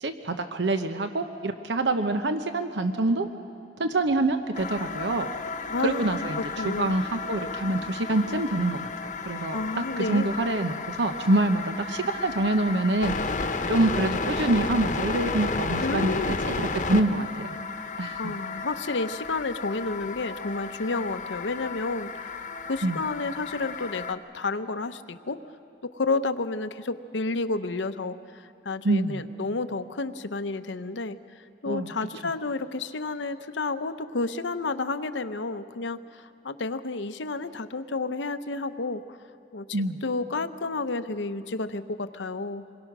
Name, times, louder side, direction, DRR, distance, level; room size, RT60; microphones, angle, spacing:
voice 1, 0.0-3.3 3.8-5.3 5.8-8.8 9.3-13.1 13.7-17.3 18.0-18.3 22.8-23.0 28.8-29.2 31.7-31.9 39.7-40.0, right 2 dB, 75° right, 8 dB, 0.9 m, -26 dB
sound 1, 4.5-24.1, left 4 dB, 45° left, 1.0 m, -33 dB
voice 2, 5.7-6.9 9.5-10.3 15.8-16.4 18.1-22.4 22.7-25.4 25.8-31.2 31.6-39.2 39.5-39.7 40.0-42.6, left 3 dB, 90° left, 10 dB, 0.9 m, -31 dB
27.0 x 22.0 x 6.1 m, 2.8 s
head